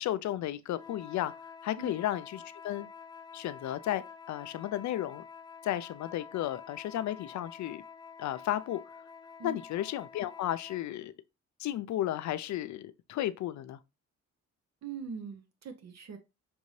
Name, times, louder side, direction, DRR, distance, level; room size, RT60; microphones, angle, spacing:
voice 1, 0.0-1.3 1.6-2.9 3.3-5.2 5.6-7.8 8.2-8.8 9.4-11.1 11.6-13.8, left 13 dB, 70° left, 0.5 m, -33 dB
sound 1, 0.7-10.9, left 6 dB, 15° left, 0.4 m, -49 dB
voice 2, 14.8-16.2, right 5 dB, 65° right, 0.7 m, -42 dB
5.9 x 2.7 x 3.1 m
cardioid pair, 90°, 29 cm